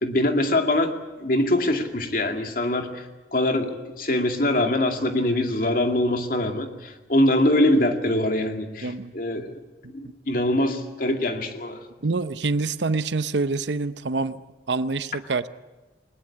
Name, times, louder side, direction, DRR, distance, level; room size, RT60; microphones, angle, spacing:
voice 1, 0.0-0.9 1.2-3.0 3.3-9.5 9.9-11.8, left 1 dB, 50° left, 5 dB, 2.3 m, -23 dB
voice 2, 8.8-9.1 9.4-9.5 12.0-14.4 14.7-15.5, right 3 dB, 85° right, 13 dB, 0.8 m, -26 dB
20.5 x 20.0 x 8.6 m, 1.2 s
head